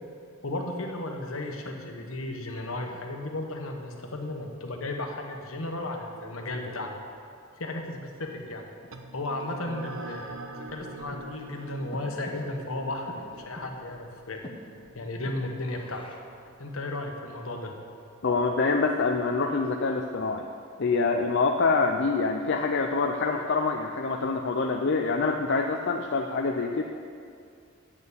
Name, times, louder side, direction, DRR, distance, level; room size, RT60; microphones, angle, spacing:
voice 1, 0.4-7.0 7.6-8.7 9.1-14.4 14.9-16.0 16.6-17.7, left 2 dB, 70° left, 2 dB, 1.2 m, -34 dB
Breathing, 8.2-16.4, left 1 dB, 25° left, 0.9 m, -49 dB
sound 1, 8.9-17.8, right 2 dB, 70° right, 0.7 m, -45 dB
voice 2, 18.2-20.5 20.8-26.8, left 4 dB, 55° left, 2 dB, 0.5 m, -26 dB
8.6 x 6.8 x 8.5 m, 2.4 s
head